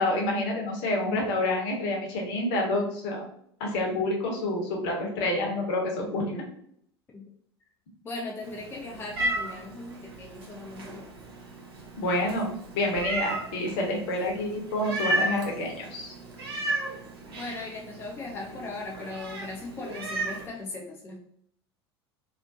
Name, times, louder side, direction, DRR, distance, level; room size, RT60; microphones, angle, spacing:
voice 1, 0.0-3.3 3.6-6.4 12.0-16.1, left 1 dB, 50° left, 0 dB, 0.8 m, -28 dB
voice 2, 8.0-11.2 16.9-17.0 17.3-21.2, left 3 dB, 15° left, -2 dB, 0.4 m, -38 dB
Meow, 8.4-20.5, right 1 dB, 65° right, 0.6 m, -34 dB
2.3 x 2.1 x 2.6 m, 0.68 s
figure-of-eight pair, 75°, 14 cm